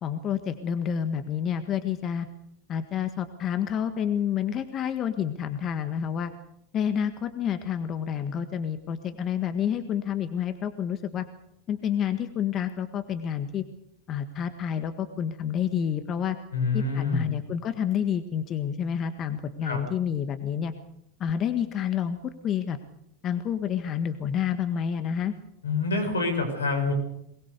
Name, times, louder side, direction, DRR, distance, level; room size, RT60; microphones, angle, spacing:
voice 1, 0.0-2.3 2.7-6.3 6.7-11.3 11.7-13.6 14.1-16.4 16.7-20.7 21.2-22.8 23.2-25.3, left 8 dB, 40° left, 10 dB, 1.6 m, -29 dB
voice 2, 16.5-17.2 19.6-19.8 25.6-26.9, left 3 dB, 85° left, 7 dB, 6.1 m, -26 dB
23.0 x 20.5 x 6.8 m, 0.78 s
hypercardioid pair, 90°, 0 cm